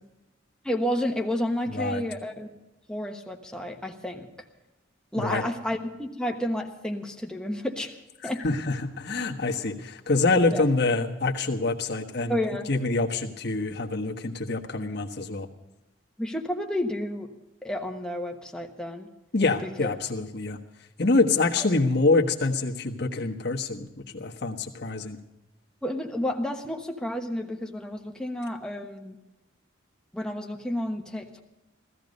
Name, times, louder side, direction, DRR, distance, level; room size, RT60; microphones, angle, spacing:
voice 1, 0.6-2.5 2.9-4.3 5.1-7.9 8.2-8.4 10.5-10.7 12.3-12.7 16.2-17.3 17.6-19.1 19.6-19.9 21.6-21.7 25.8-29.2 30.1-31.4, left 1 dB, 5° left, 2 dB, 1.2 m, -31 dB
voice 2, 1.7-2.0 5.2-5.4 8.4-12.4 12.7-15.5 19.3-20.6 21.0-25.2, left 3 dB, 50° left, 2 dB, 1.4 m, -26 dB
16.5 x 14.5 x 5.3 m, 1.0 s
head